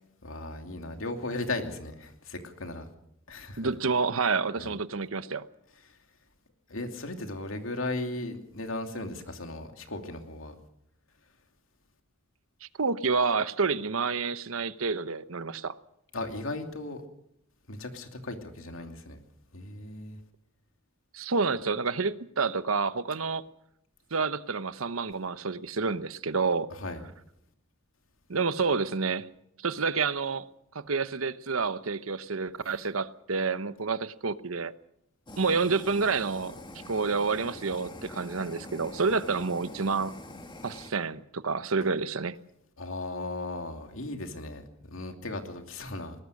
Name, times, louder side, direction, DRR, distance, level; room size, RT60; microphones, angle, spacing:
voice 1, 0.2-2.9 3.3-3.7 4.6-4.7 6.7-10.5 16.1-17.0 17.7-19.2 19.5-20.2 26.8-27.0 42.8-46.1, left 2 dB, 75° left, 5 dB, 2.7 m, -36 dB
voice 2, 3.6-5.5 12.6-15.7 21.1-23.4 24.1-26.7 28.3-29.3 29.6-30.4 30.7-34.7 35.4-36.6 36.9-40.1 40.6-42.4, right 4 dB, 85° right, 13 dB, 1.0 m, -29 dB
Fire, 35.3-40.9, left 1 dB, 25° left, 2.2 m, -45 dB
21.5 x 19.0 x 6.5 m, 0.76 s
head